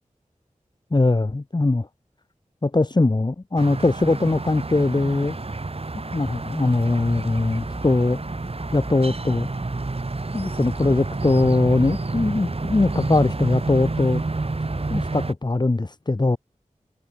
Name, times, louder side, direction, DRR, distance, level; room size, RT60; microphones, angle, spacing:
voice 1, 0.9-1.9 2.6-5.4 5.9-8.2 8.7-9.5 10.3-14.2 14.9-16.4, left 2 dB, 30° left, 0.9 m, -21 dB
sound 1, 3.6-15.3, right 3 dB, 45° right, 1.3 m, -29 dB
sound 2, 7.0-15.1, right 1 dB, 20° right, 4.1 m, -38 dB
wide cardioid pair, 45°, 14 cm